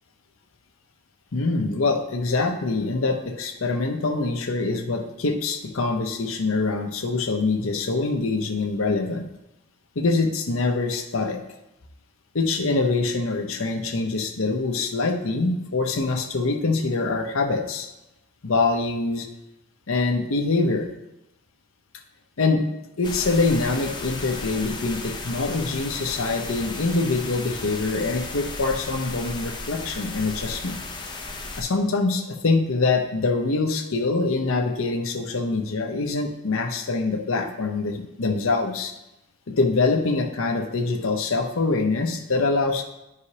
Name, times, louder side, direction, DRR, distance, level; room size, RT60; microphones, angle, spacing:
voice 1, 1.3-9.3 10.0-11.4 12.3-17.9 18.4-19.3 19.9-20.9 22.4-22.6 23.0-30.8 31.6-38.9 39.6-42.8, left 3 dB, 65° left, 4 dB, 0.8 m, -24 dB
sound 1, 23.0-31.6, left 3 dB, 20° left, 0.6 m, -35 dB
11.0 x 4.8 x 2.8 m, 0.91 s
head